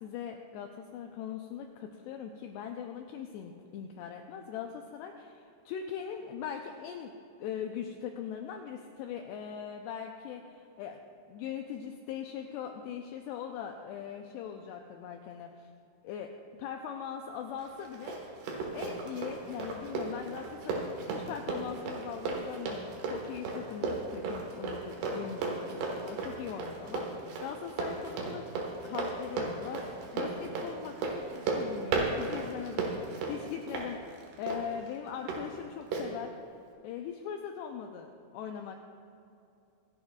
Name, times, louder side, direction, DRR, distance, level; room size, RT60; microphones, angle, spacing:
voice 1, 0.0-7.1 7.4-11.0 11.3-15.7 16.0-16.3 16.6-18.3 18.7-28.5 28.8-29.8 30.1-32.9 33.3-36.3 36.8-38.8, left 8 dB, 85° left, 3 dB, 2.4 m, -40 dB
Run, 17.6-35.4 35.9-36.1, right 3 dB, 70° right, 3.4 m, -35 dB
26.0 x 9.0 x 2.3 m, 2.6 s
omnidirectional pair, 5.3 m